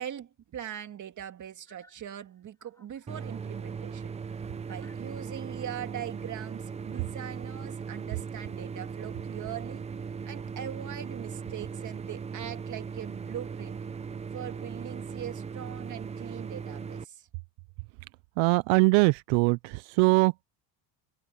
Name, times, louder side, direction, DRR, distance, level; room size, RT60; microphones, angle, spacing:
voice 1, 0.0-4.1 4.6-9.8 10.3-13.8 14.3-17.3, right 10 dB, 35° right, 2.4 m, -41 dB
sound 1, 1.7-3.7 4.2-4.3 4.6-5.6 6.9-7.1, left 2 dB, 5° left, 6.1 m, -64 dB
sound 2, 3.1-17.0, right 6 dB, 15° right, 0.5 m, -38 dB
voice 2, 18.4-20.4, right 27 dB, 75° right, 0.6 m, -22 dB
cardioid pair, 135°, 48 cm